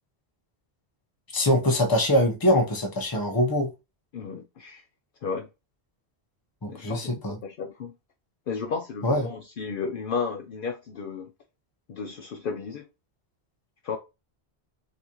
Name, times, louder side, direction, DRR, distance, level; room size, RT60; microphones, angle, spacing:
voice 1, 1.3-3.7 6.6-7.4 9.0-9.2, left 1 dB, 20° left, 0.8 m, -23 dB
voice 2, 4.1-4.8 5.2-5.5 6.7-7.1 7.4-7.9 8.5-11.3 11.9-12.9 13.8-14.0, left 5 dB, 60° left, 0.7 m, -33 dB
3.9 x 2.6 x 2.9 m
omnidirectional pair, 1.1 m